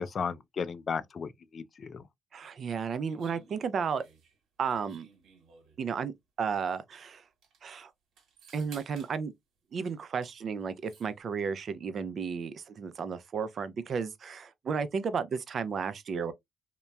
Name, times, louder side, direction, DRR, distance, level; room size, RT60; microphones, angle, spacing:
voice 1, 0.0-2.0, left 6 dB, 50° left, 0.3 m, -35 dB
voice 2, 2.3-4.0 4.6-5.1 5.8-7.2 7.6-7.9 8.5-9.3 9.7-16.3, right 6 dB, 55° right, 0.4 m, -33 dB
sound 1, 3.1-5.9 6.9-7.0 7.3-7.6 8.2-9.2 9.9-10.4 10.6-11.1, right 5 dB, 80° right, 1.2 m, -56 dB
2.9 x 2.1 x 2.3 m
cardioid pair, 90°, 0 cm